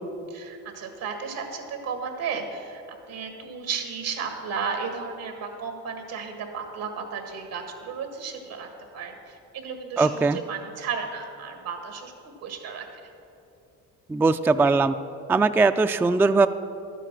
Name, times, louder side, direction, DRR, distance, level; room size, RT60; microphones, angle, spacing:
voice 1, 0.3-2.8 3.1-8.7 8.9-12.1 12.4-12.9, right 5 dB, 80° right, 5 dB, 1.8 m, -34 dB
voice 2, 10.0-10.4 14.1-14.9 15.3-16.5, right 3 dB, 5° right, 10 dB, 0.3 m, -20 dB
12.0 x 9.2 x 6.1 m, 2.8 s
supercardioid pair, 65°, 35 cm